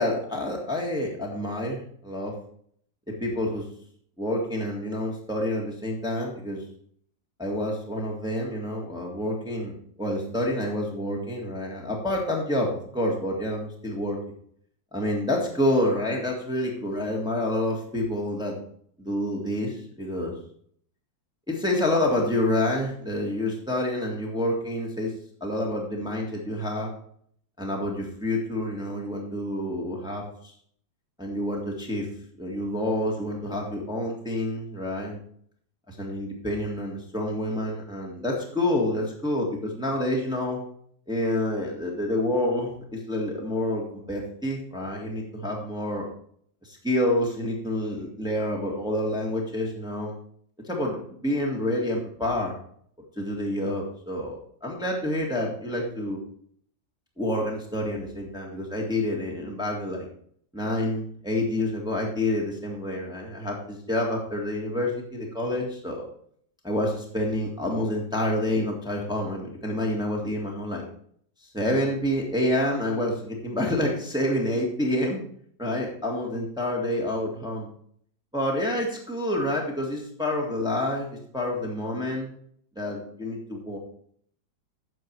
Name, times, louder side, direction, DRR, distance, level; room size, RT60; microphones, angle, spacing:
voice 1, 0.0-2.3 3.2-3.7 4.2-6.6 7.4-14.2 14.9-18.6 19.0-20.3 21.5-25.1 25.4-26.9 27.6-30.2 31.2-32.1 32.4-35.2 35.9-40.6 41.1-46.0 46.6-50.2 50.7-52.5 53.2-56.2 57.2-60.1 60.5-66.0 66.6-70.8 71.4-75.2 75.6-77.7 78.3-82.3 82.8-83.8, left 1 dB, ahead, -1 dB, 1.7 m, -28 dB
9.4 x 6.8 x 4.6 m, 0.62 s
omnidirectional pair, 2.0 m